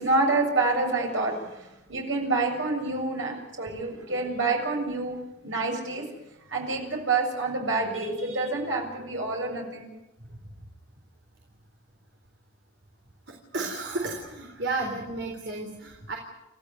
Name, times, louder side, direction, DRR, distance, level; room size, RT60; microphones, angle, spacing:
voice 1, 0.0-5.2 5.4-6.0 6.5-9.8, right 3 dB, 85° right, 0 dB, 7.4 m, -27 dB
voice 2, 13.3-16.2, right 3 dB, 65° right, 1 dB, 3.9 m, -33 dB
30.0 x 15.0 x 9.7 m, 0.97 s
head